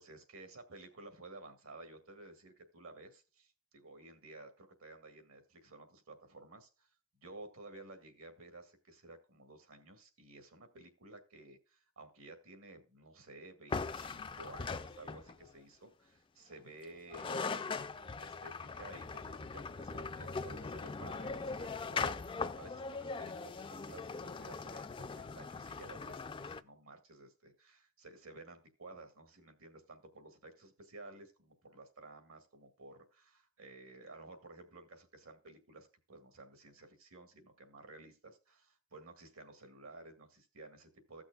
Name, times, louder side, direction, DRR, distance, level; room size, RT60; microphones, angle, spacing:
voice 1, 0.0-6.9 7.2-41.2, right 2 dB, 75° right, 7 dB, 1.9 m, -54 dB
sound 1, 13.7-15.5 16.8-16.9 17.1-26.6, left 4 dB, 25° left, 0.4 m, -40 dB
16.0 x 6.2 x 2.3 m, 0.33 s
head